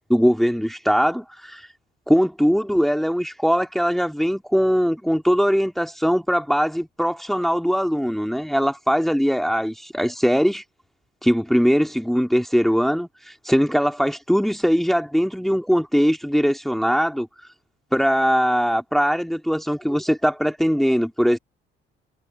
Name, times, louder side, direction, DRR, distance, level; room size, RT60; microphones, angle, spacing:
voice 1, 0.1-1.7 2.1-10.6 11.2-17.3 17.9-21.4, equal, ahead, 3.0 m, -21 dB
figure-of-eight pair, 50°, 29 cm